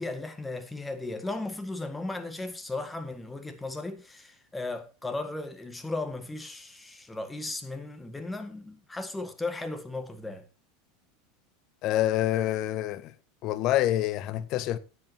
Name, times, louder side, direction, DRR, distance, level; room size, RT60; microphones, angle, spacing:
voice 1, 0.0-10.5, left 2 dB, 10° left, 2.0 m, -36 dB
voice 2, 11.8-13.1 13.4-14.8, left 13 dB, 45° left, 0.9 m, -27 dB
17.0 x 8.2 x 3.0 m
figure-of-eight pair, 80°, 0 cm